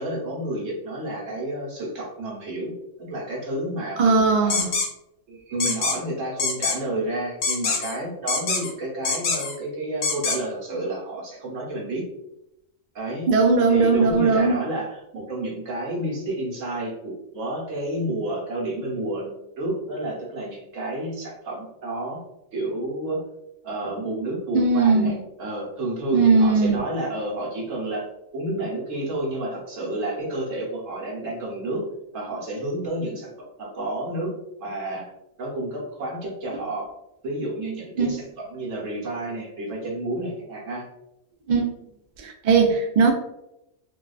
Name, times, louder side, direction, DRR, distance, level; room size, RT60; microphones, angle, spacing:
voice 1, 0.0-4.6 5.3-12.0 12.9-13.3 13.7-22.2 22.5-23.2 23.6-28.1 28.3-31.8 32.1-33.3 33.6-34.3 34.6-35.1 35.4-36.9 37.2-40.9, right 1 dB, 90° right, -4 dB, 1.4 m, -30 dB
voice 2, 4.0-4.7 13.3-14.6 24.5-25.1 26.1-26.8 38.0-38.2 41.5-41.7 42.2-43.1, right 4 dB, 55° right, 1 dB, 0.5 m, -19 dB
sound 1, 4.5-4.9 5.6-6.0 6.4-6.8 7.4-7.9 8.3-8.7 9.0-9.5 10.0-10.4, left 4 dB, 90° left, 1.0 m, -24 dB
3.8 x 2.3 x 2.3 m, 0.86 s
omnidirectional pair, 1.3 m